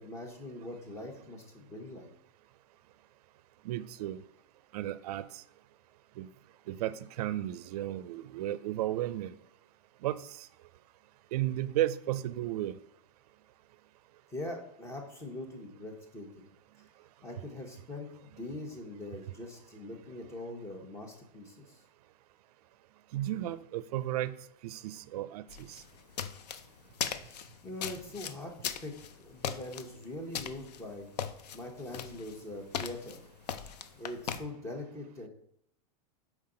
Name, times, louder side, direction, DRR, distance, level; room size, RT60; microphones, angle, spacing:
voice 1, 0.0-2.1 14.3-16.3 17.2-21.8 27.2-31.1 31.5-33.2 34.0-35.3, left 1 dB, 15° left, 3 dB, 1.0 m, -42 dB
voice 2, 3.6-4.2 4.7-5.4 6.2-6.3 6.7-9.3 10.0-10.5 11.3-12.7 23.1-24.4 24.6-25.8, right 13 dB, 70° right, 16 dB, 0.4 m, -34 dB
sound 1, 25.5-34.4, left 8 dB, 85° left, 0.6 m, -39 dB
5.5 x 4.7 x 3.8 m, 0.72 s
supercardioid pair, 145°, 20 cm